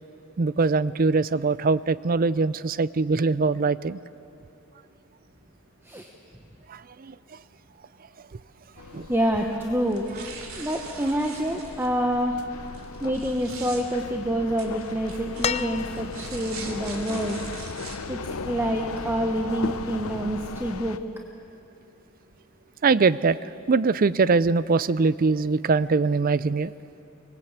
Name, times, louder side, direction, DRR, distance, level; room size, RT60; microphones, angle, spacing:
voice 1, 0.4-4.0 6.7-7.1 8.9-9.1 22.8-23.4 23.7-26.7, right 4 dB, 45° right, 18 dB, 0.5 m, -22 dB
sound 1, 8.8-21.0, left 4 dB, 90° left, 0.8 m, -37 dB
voice 2, 9.1-10.1 10.6-12.4 13.0-17.4 18.1-18.2 18.4-21.0, equal, 10° right, 2 dB, 1.0 m, -27 dB
sound 2, 9.9-11.9 12.7-13.8 14.6-18.0, right 5 dB, 80° right, 2.8 m, -42 dB
sound 3, 15.4-16.4 18.0-18.1, left 7 dB, 30° left, 0.4 m, -30 dB
24.0 x 20.0 x 8.2 m, 2.9 s
head